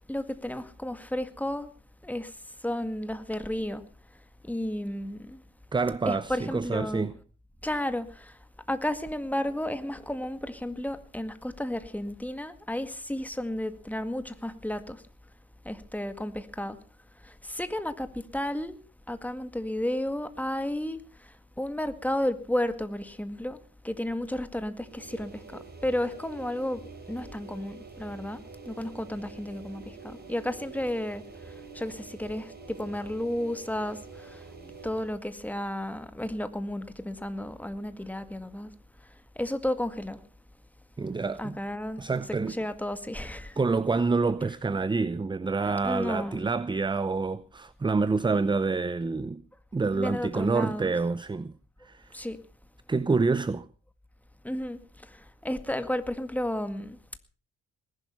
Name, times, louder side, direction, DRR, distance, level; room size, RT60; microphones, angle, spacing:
voice 1, 0.1-1.7 2.0-2.3 2.6-3.8 4.4-5.4 6.1-7.1 7.6-8.4 8.7-15.0 15.7-16.8 17.2-18.8 19.1-21.0 21.6-23.6 23.8-25.4 25.8-26.8 27.1-28.4 28.7-31.2 31.7-34.4 34.8-38.7 39.4-40.2 41.4-42.0 42.6-43.6 45.6-46.5 49.9-50.9 52.1-52.4 54.4-54.8 55.1-55.2 55.4-57.0, left 1 dB, 5° left, 1.9 m, -32 dB
voice 2, 5.7-7.2 41.0-41.6 42.0-42.6 43.6-49.4 49.7-51.5 51.8-52.1 52.9-53.7, right 4 dB, 15° right, 0.7 m, -27 dB
sound 1, 24.8-35.2, right 4 dB, 30° right, 4.0 m, -46 dB
20.0 x 11.5 x 5.5 m
cardioid pair, 90°, 30 cm